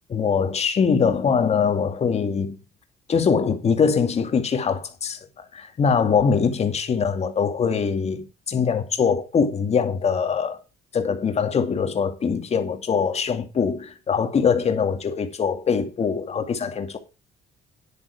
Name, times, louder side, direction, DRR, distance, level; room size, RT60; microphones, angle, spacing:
voice 1, 0.1-2.6 3.1-10.6 10.9-17.0, left 6 dB, 40° left, 2.3 m, -23 dB
9.9 x 8.9 x 4.8 m
cardioid pair, 110°, 17 cm